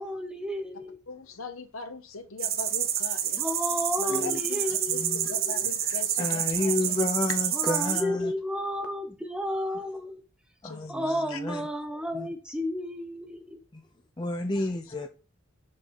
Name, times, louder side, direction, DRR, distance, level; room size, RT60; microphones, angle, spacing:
voice 1, 0.0-1.0 3.4-5.7 7.5-10.2 10.9-13.6, left 1 dB, 5° right, 1.0 m, -32 dB
voice 2, 1.1-3.4 4.0-4.6 4.9-7.0 10.6-11.0 11.3-11.4, left 3 dB, 80° left, 1.0 m, -40 dB
sound 1, 2.4-8.0, right 10 dB, 45° right, 0.8 m, -28 dB
voice 3, 4.1-4.4 5.0-5.3 5.8-8.3 10.6-11.6 12.1-12.3 13.7-13.8 14.2-15.1, left 1 dB, 20° left, 0.6 m, -31 dB
6.4 x 3.8 x 5.7 m
head